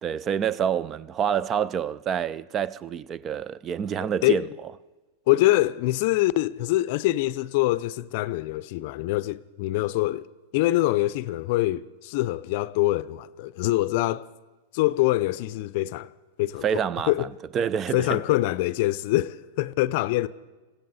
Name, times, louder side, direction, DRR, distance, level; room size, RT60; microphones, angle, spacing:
voice 1, 0.0-4.5 16.6-17.3 17.5-18.2, right 8 dB, 30° right, 0.4 m, -27 dB
voice 2, 5.3-10.3 10.5-14.3 14.7-16.1 16.4-17.3 17.9-20.3, left 17 dB, 55° left, 0.5 m, -24 dB
20.5 x 15.5 x 4.1 m
hypercardioid pair, 110°, 0 cm